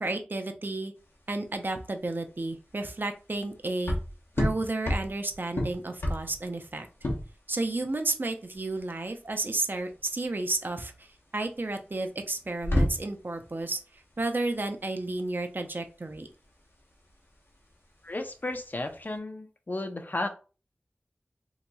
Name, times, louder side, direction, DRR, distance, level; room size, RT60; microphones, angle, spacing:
voice 1, 0.0-0.9 1.3-4.0 4.4-6.9 7.5-11.1 11.3-13.8 14.2-16.3, right 2 dB, 55° right, 5 dB, 0.5 m, -32 dB
sound 1, 1.0-19.2, left 1 dB, 75° left, 0.9 m, -34 dB
voice 2, 18.0-20.3, left 2 dB, 45° left, 6 dB, 0.6 m, -33 dB
3.8 x 2.9 x 2.3 m, 0.35 s
wide cardioid pair, 40°, 4 cm